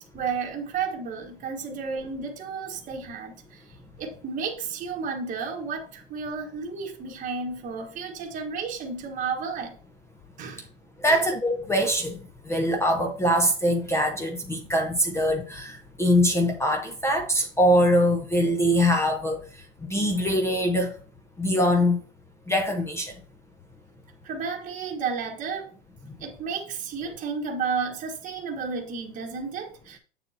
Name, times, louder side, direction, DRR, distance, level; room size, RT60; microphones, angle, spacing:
voice 1, 0.1-3.6 4.0-9.8 10.4-10.6 11.1-11.2 24.2-25.7 26.2-30.0, right 5 dB, 25° right, 1.3 m, -32 dB
voice 2, 11.0-19.4 19.8-20.9 21.4-22.0 22.5-23.1, equal, 10° left, 0.7 m, -23 dB
7.4 x 6.8 x 2.7 m
hypercardioid pair, 130°, 34 cm